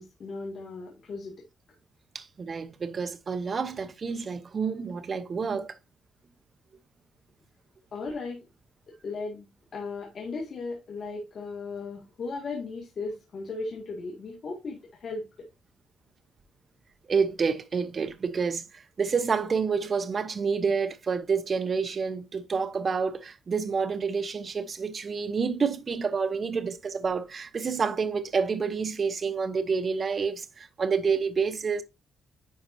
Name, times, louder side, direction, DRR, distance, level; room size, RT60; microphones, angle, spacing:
voice 1, 0.0-1.4 7.9-8.4 8.9-9.5 9.7-15.3, left 3 dB, 50° left, 2.1 m, -36 dB
voice 2, 2.1-5.7 17.1-31.8, right 5 dB, 40° right, 0.9 m, -28 dB
10.5 x 4.4 x 2.7 m
cardioid pair, 90°, 0 cm